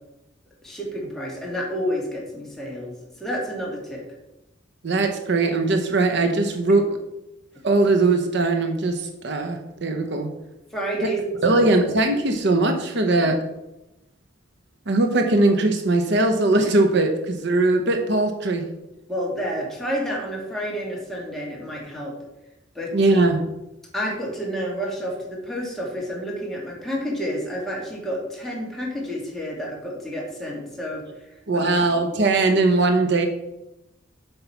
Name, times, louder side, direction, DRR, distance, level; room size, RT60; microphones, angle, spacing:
voice 1, 0.6-2.9 3.2-4.0 10.7-11.6 19.1-22.1 22.7-23.2 23.9-31.1 31.5-31.9, equal, ahead, -4 dB, 2.4 m, -30 dB
voice 2, 4.8-6.9 7.6-10.3 11.4-13.4 14.9-18.6 22.9-23.4 31.5-33.3, right 2 dB, 60° right, 6 dB, 0.9 m, -20 dB
8.0 x 5.5 x 5.9 m, 0.92 s
head